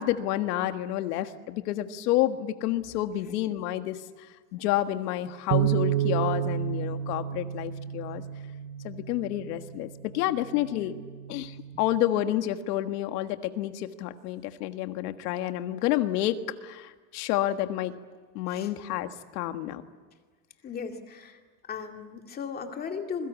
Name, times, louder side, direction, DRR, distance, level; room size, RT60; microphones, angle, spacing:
voice 1, 0.0-4.3 4.5-8.2 8.8-10.9 11.3-17.9 18.4-19.8, left 13 dB, 75° left, 8 dB, 1.6 m, -29 dB
sound 1, 5.5-11.8, right 10 dB, 35° right, 1.1 m, -31 dB
voice 2, 20.6-21.4 21.7-23.3, left 6 dB, 20° left, 4 dB, 2.3 m, -36 dB
27.5 x 22.5 x 8.4 m, 1.4 s
cardioid pair, 175°, 47 cm